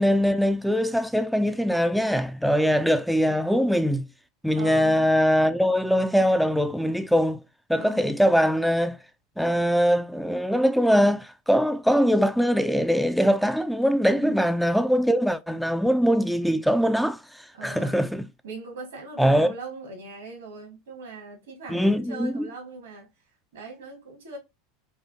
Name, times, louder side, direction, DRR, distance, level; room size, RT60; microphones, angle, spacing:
voice 1, 0.0-4.0 4.4-7.4 7.7-9.0 9.4-18.2 19.2-19.5 21.7-22.5, equal, ahead, 0.3 m, -22 dB
voice 2, 2.6-3.4 4.6-5.0 7.7-8.2 14.2-14.4 17.5-18.1 18.4-23.1 23.5-24.4, right 3 dB, 80° right, 1.8 m, -40 dB
4.8 x 2.4 x 2.7 m
hypercardioid pair, 85°, 0 cm